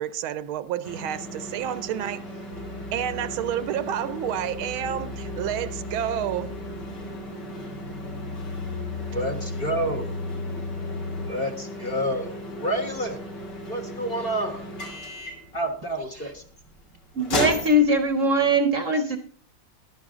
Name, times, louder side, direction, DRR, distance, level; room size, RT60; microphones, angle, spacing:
voice 1, 0.0-2.2 2.9-6.5, right 10 dB, 80° right, 1.6 m, -29 dB
sound 1, 0.8-18.6, equal, 55° left, 3.5 m, -36 dB
sound 2, 2.5-11.3, left 3 dB, 75° left, 0.6 m, -36 dB
voice 2, 9.1-10.2 11.2-13.2 13.7-14.7 15.5-16.4, right 1 dB, 30° left, 1.3 m, -29 dB
voice 3, 17.1-19.2, equal, 50° right, 1.1 m, -21 dB
13.5 x 11.0 x 3.7 m
omnidirectional pair, 2.3 m